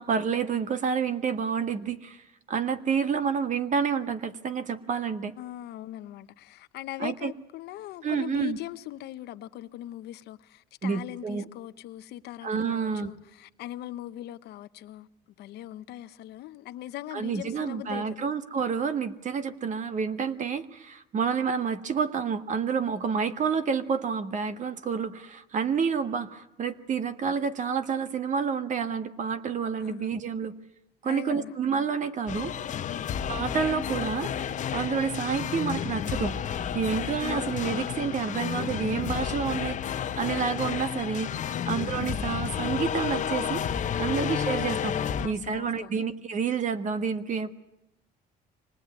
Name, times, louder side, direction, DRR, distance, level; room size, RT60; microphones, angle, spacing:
voice 1, 0.0-5.3 7.0-7.3 8.0-8.6 10.8-11.4 12.4-13.1 17.1-30.5 31.0-32.5 33.3-43.6 44.0-47.5, right 6 dB, 45° right, 1.5 m, -29 dB
voice 2, 5.4-15.1 15.4-18.3 29.8-30.1 31.0-31.5 32.8-33.1 41.5-41.8 43.9-44.2 45.1-46.0, left 14 dB, 75° left, 0.9 m, -40 dB
sound 1, 32.3-45.3, left 8 dB, 45° left, 1.0 m, -31 dB
24.5 x 19.5 x 9.6 m
cardioid pair, 110°, 17 cm